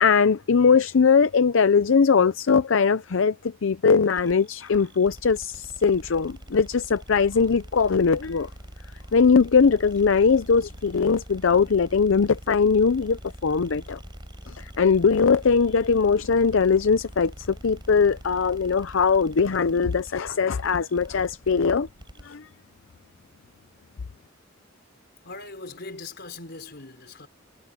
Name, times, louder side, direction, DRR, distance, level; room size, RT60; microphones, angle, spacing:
voice 1, 0.0-8.5 9.1-14.0 14.5-21.9 22.2-22.5, left 5 dB, 70° left, 0.5 m, -21 dB
sound 1, 4.1-22.3, equal, 25° right, 4.4 m, -44 dB
voice 2, 25.2-27.3, left 3 dB, 55° left, 4.6 m, -40 dB
head